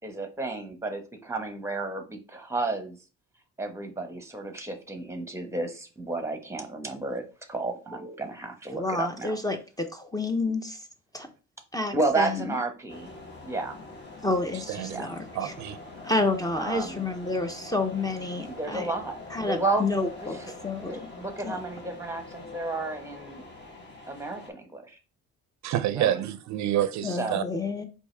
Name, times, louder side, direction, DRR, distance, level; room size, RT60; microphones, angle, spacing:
voice 1, 0.0-3.0 3.6-7.2 7.5-9.4 11.9-13.1 13.4-13.8 14.8-15.1 16.6-17.1 18.5-19.8 20.2-20.3 20.9-23.4 24.1-25.0 25.9-26.3 27.1-27.4, right 3 dB, 10° right, 0.9 m, -32 dB
voice 2, 8.7-10.8 11.1-11.3 11.7-12.6 14.2-15.5 16.0-18.9 19.3-20.4 20.6-21.0 21.4-21.6 27.0-27.8, left 2 dB, 10° left, 0.6 m, -29 dB
sound 1, 12.9-24.5, left 2 dB, 35° left, 1.6 m, -44 dB
voice 3, 15.4-15.8 25.6-27.4, right 11 dB, 70° right, 0.4 m, -27 dB
4.6 x 2.7 x 3.2 m
cardioid pair, 90°, 30 cm